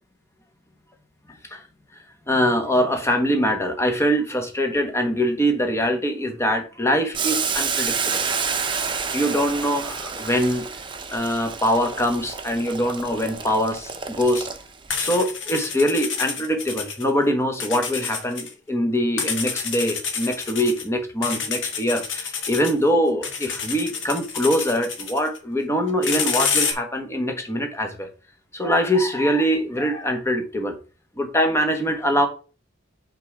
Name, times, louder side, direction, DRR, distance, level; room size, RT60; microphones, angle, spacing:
voice 1, 1.3-1.6 2.3-8.2 9.1-10.7 11.1-14.5 15.0-28.1 28.5-30.8 31.2-32.3, equal, 15° left, 1.2 m, -23 dB
Boiling, 7.1-14.9, right 6 dB, 25° right, 0.8 m, -29 dB
sound 1, 14.2-14.4 14.9-17.1 17.6-18.5 19.2-20.8 21.2-22.7 23.2-25.4 25.9-26.7, left 6 dB, 80° left, 1.3 m, -28 dB
5.3 x 3.9 x 6.0 m
head